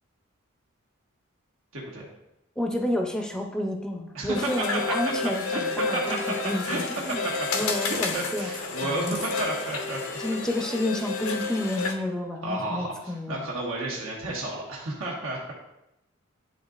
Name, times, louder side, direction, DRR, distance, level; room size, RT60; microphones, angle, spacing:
voice 1, 1.7-2.1 4.1-4.5 5.5-5.6 5.9-6.0 6.6-6.8 7.2-7.5 7.7-10.0 12.4-15.5, right 2 dB, 65° right, -4 dB, 1.4 m, -32 dB
voice 2, 2.6-6.2 6.4-8.5 8.8-9.2 10.2-13.4, left 1 dB, 5° left, 2 dB, 0.7 m, -30 dB
sound 1, 4.3-11.9, left 4 dB, 80° left, 0.8 m, -31 dB
11.0 x 3.8 x 2.4 m, 0.89 s
head